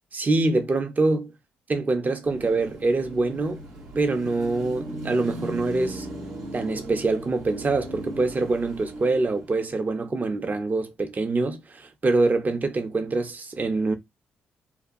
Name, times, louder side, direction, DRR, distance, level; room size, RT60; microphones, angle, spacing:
voice 1, 0.1-1.3 1.7-3.6 4.0-6.1 6.5-13.9, right 3 dB, 35° right, 0.6 m, -25 dB
Car passing by / Traffic noise roadway noise / Engine, 2.2-9.6, right 1 dB, 85° right, 0.9 m, -38 dB
2.7 x 2.3 x 2.5 m
supercardioid pair, 55°, 5 cm